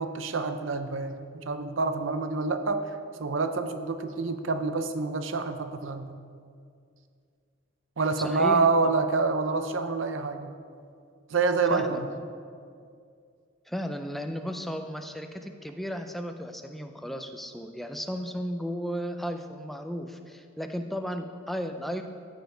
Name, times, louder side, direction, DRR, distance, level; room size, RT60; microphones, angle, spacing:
voice 1, 0.0-6.1 8.0-10.5 11.3-12.1, right 4 dB, 65° right, 9 dB, 0.6 m, -27 dB
voice 2, 8.2-8.9 11.7-12.0 13.7-22.0, equal, ahead, 6 dB, 0.4 m, -34 dB
14.0 x 5.0 x 3.8 m, 2.3 s
head